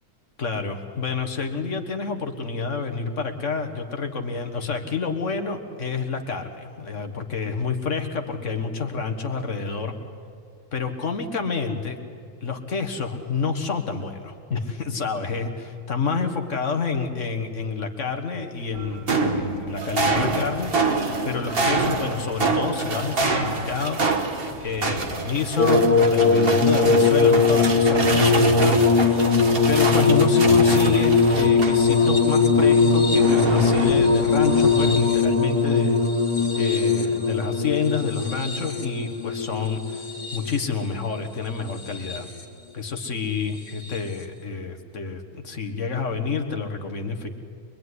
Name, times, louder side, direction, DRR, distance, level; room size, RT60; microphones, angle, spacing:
voice 1, 0.4-10.0 10.7-12.0 12.4-20.7 21.2-24.0 24.6-29.0 29.7-36.0 36.6-42.3 42.7-47.3, left 5 dB, 50° left, 6 dB, 1.8 m, -28 dB
sound 1, 18.7-32.1 32.5-35.2, right 3 dB, 40° right, 1.6 m, -26 dB
sound 2, 25.6-40.8 41.7-42.4 43.8-44.0, left 4 dB, 75° left, 2.5 m, -20 dB
23.0 x 22.5 x 9.7 m, 2.4 s
omnidirectional pair, 1.7 m